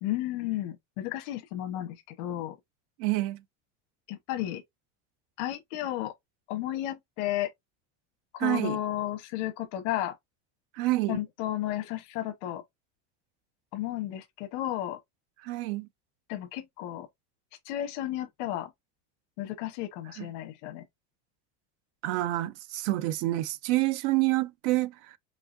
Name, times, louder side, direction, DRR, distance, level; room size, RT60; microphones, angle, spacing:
voice 1, 0.0-2.6 4.1-4.6 5.4-6.1 6.5-7.5 8.3-10.1 11.1-12.6 13.7-15.0 16.3-17.1 17.6-18.7 19.4-20.8, left 13 dB, 85° left, 1.1 m, -33 dB
voice 2, 3.0-3.4 8.4-8.8 10.7-11.2 15.4-15.9 20.2-20.3 22.0-25.2, right 18 dB, 90° right, 0.6 m, -28 dB
4.9 x 2.8 x 2.6 m
cardioid pair, 155°, 35 cm